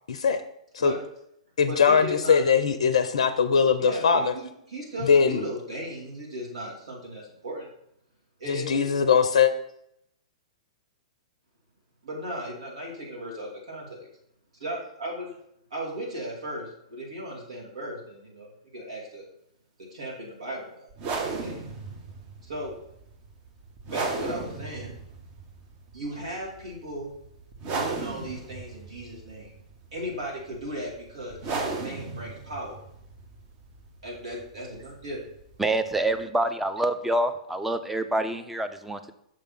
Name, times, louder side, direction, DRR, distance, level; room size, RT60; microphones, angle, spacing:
voice 1, 0.1-0.4 0.7-0.9 1.6-4.3 5.0-5.4 8.5-9.5, left 6 dB, 70° left, 11 dB, 0.4 m, -21 dB
voice 2, 1.7-2.4 3.8-7.7 8.4-8.9 12.0-14.1 14.6-15.4 15.7-19.2 19.8-20.9 21.2-21.6 22.4-22.7 23.8-25.0 25.9-27.1 27.7-29.5 29.9-32.8 34.0-35.2, equal, 70° right, -2 dB, 2.7 m, -36 dB
sound 1, 20.9-36.2, right 4 dB, 35° right, 1.1 m, -37 dB
voice 3, 35.6-39.1, right 1 dB, 5° right, 8 dB, 0.5 m, -26 dB
6.2 x 3.4 x 5.8 m, 0.76 s
figure-of-eight pair, 115°, 3 cm